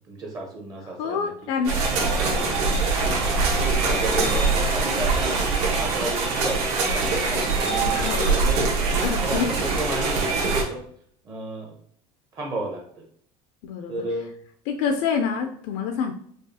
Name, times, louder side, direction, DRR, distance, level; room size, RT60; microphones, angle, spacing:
voice 1, 0.1-1.5 1.9-2.6 3.0-4.4 4.7-6.6 6.9-8.7 9.2-10.8 11.2-11.7 12.3-13.0 13.9-14.3, right 2 dB, 30° right, 0 dB, 0.7 m, -33 dB
voice 2, 1.0-1.8 7.9-8.5 9.0-9.5 13.6-13.9 14.7-16.1, left 6 dB, 60° left, 4 dB, 0.4 m, -27 dB
sound 1, 1.6-10.6, right 3 dB, 70° right, 1.1 m, -23 dB
4.8 x 2.4 x 2.7 m, 0.63 s
cardioid pair, 170°, 13 cm